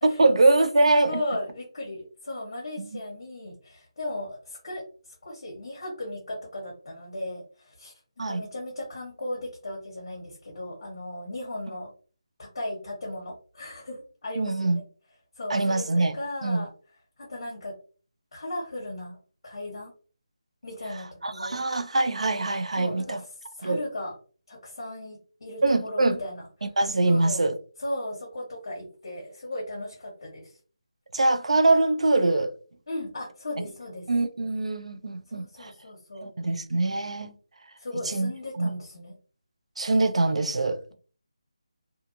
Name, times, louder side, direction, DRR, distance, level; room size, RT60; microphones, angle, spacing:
voice 1, 0.0-1.2 2.8-2.9 8.2-8.4 14.4-14.8 15.5-16.2 16.4-16.6 20.9-23.2 23.6-23.8 25.6-26.2 26.8-27.6 31.1-32.5 34.1-35.7 36.2-37.4 38.0-38.8 39.8-40.9, right 2 dB, 75° right, 0.4 m, -23 dB
voice 2, 0.9-4.8 5.2-11.9 12.4-14.8 15.4-16.7 17.2-17.7 18.3-19.2 19.4-19.9 20.6-21.6 22.8-23.3 23.6-24.1 24.5-26.4 27.1-27.4 27.8-30.6 32.9-34.1 35.3-36.3 37.8-39.1, left 1 dB, 45° left, 1.0 m, -36 dB
2.5 x 2.5 x 2.6 m
figure-of-eight pair, 175°, 3 cm